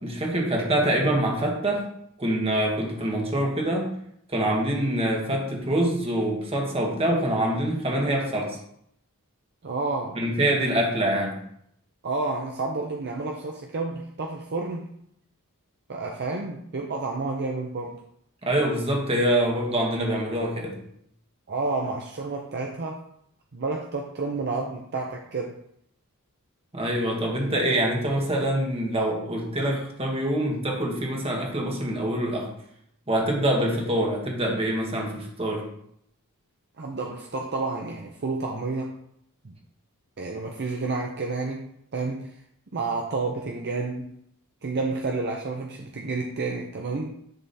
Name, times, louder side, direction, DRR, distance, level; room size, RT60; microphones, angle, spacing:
voice 1, 0.0-1.9 2.2-3.9 4.3-8.6 10.1-11.4 18.4-20.8 26.7-32.5 33.1-35.7, right 1 dB, 25° right, 0 dB, 1.7 m, -25 dB
voice 2, 9.6-10.2 12.0-14.9 15.9-18.0 21.5-23.0 23.5-25.6 36.8-38.9 39.4-39.5 40.2-42.4 42.7-44.1 44.6-47.2, right 3 dB, 50° right, 1 dB, 0.7 m, -30 dB
10.0 x 3.6 x 4.2 m, 0.72 s
head